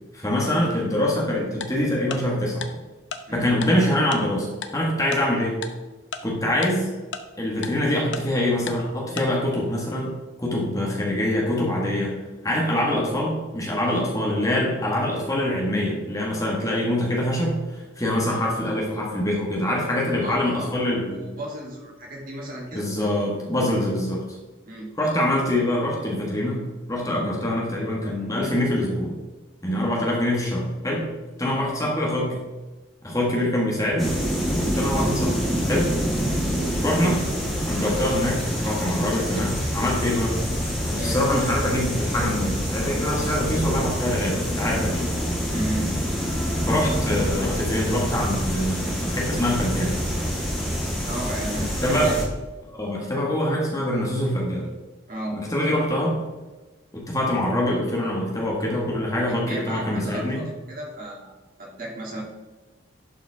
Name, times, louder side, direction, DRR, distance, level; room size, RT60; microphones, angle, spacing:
voice 1, 0.1-2.7 3.3-4.5 4.7-5.6 6.2-6.9 7.4-10.1 10.4-12.1 12.4-21.2 22.7-24.2 25.0-29.1 29.6-31.1 31.4-32.4 33.0-34.1 34.6-35.3 35.7-35.9 36.8-37.2 37.7-40.4 40.9-45.1 46.7-50.0 51.8-52.1 52.7-54.7 55.3-56.2 56.9-60.4, left 1 dB, 15° left, -3 dB, 1.8 m, -24 dB
Tick-tock, 1.6-1.7 2.1-2.2 2.6-2.7 3.1-3.2 3.6-3.7 4.1-4.2 4.6-4.7 5.1-5.2 5.6-5.7 6.1-6.2 6.6-6.7 7.1-7.2 7.6-7.7 8.1-8.2 8.7-8.8 9.2-9.3, left 6 dB, 70° left, 0.9 m, -31 dB
voice 2, 20.2-20.8 21.1-22.9 23.7-23.9 24.7-24.9 29.7-29.9 31.5-31.9 34.9-35.1 36.1-36.4 40.9-41.2 45.5-46.0 51.1-52.2 55.1-55.4 59.3-62.2, right 1 dB, 45° right, -3 dB, 2.9 m, -34 dB
sound 1, 34.0-52.3, equal, ahead, 2.0 m, -26 dB
11.5 x 5.8 x 3.7 m, 1.2 s
head